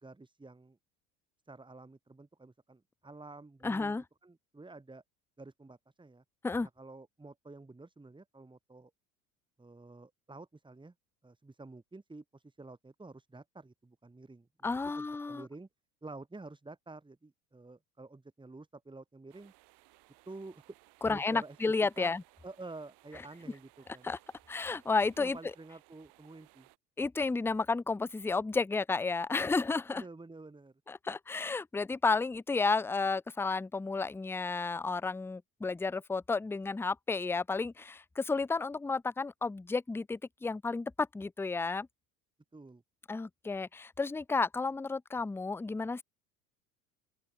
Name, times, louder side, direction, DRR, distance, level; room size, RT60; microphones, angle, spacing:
voice 1, 0.0-0.8 1.5-5.0 5.4-6.2 6.6-8.9 9.6-10.9 11.2-15.7 16.0-19.5 20.3-20.6 21.0-22.2 22.4-24.1 25.2-26.7 29.9-30.7 42.5-42.8, right 3 dB, 10° right, 2.4 m, -50 dB
voice 2, 3.6-4.0 6.4-6.7 14.6-15.5 21.0-22.2 24.0-24.2 24.5-25.4 27.0-30.0 30.9-41.9 43.1-46.0, left 4 dB, 5° left, 0.6 m, -32 dB
sound 1, 19.3-26.8, right 24 dB, 60° right, 5.7 m, -63 dB
open air
hypercardioid pair, 70°, 45 cm